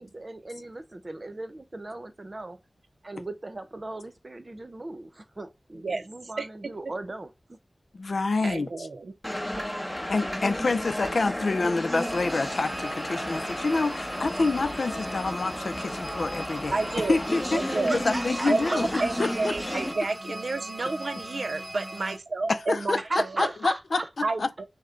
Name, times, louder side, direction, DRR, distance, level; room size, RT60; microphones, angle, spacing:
voice 1, 0.0-2.6 3.0-7.6 17.7-19.5 23.0-24.4, right 2 dB, 45° right, 0.8 m, -37 dB
voice 2, 6.4-6.7 8.4-9.1 9.5-9.7 10.5-10.6 16.7-17.2 17.5-18.0 18.5-23.0 23.4-23.5 24.2-24.6, right 3 dB, 75° right, 0.6 m, -30 dB
voice 3, 7.9-8.9 10.1-16.8 17.1-18.9 19.2-19.5 22.5-23.0 23.9-24.6, left 3 dB, 75° left, 0.5 m, -27 dB
sound 1, 9.2-19.9, left 1 dB, 15° left, 1.2 m, -33 dB
sound 2, 11.9-22.2, right 1 dB, 25° right, 1.1 m, -39 dB
6.4 x 2.2 x 3.8 m
wide cardioid pair, 60°, 0 cm